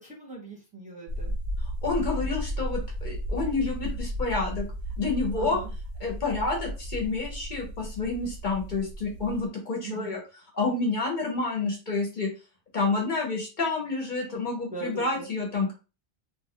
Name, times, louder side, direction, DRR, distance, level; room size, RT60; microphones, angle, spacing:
voice 1, 0.0-1.3 5.4-5.7 9.8-10.2 14.7-15.3, right 3 dB, 10° right, -2 dB, 0.8 m, -39 dB
sound 1, 1.1-9.5, equal, 75° right, 1.0 m, -34 dB
voice 2, 1.8-4.6 5.0-5.6 6.0-10.2 10.5-12.3 12.7-15.7, left 3 dB, 50° left, 0 dB, 0.9 m, -29 dB
2.5 x 2.2 x 3.6 m, 0.32 s
omnidirectional pair, 1.1 m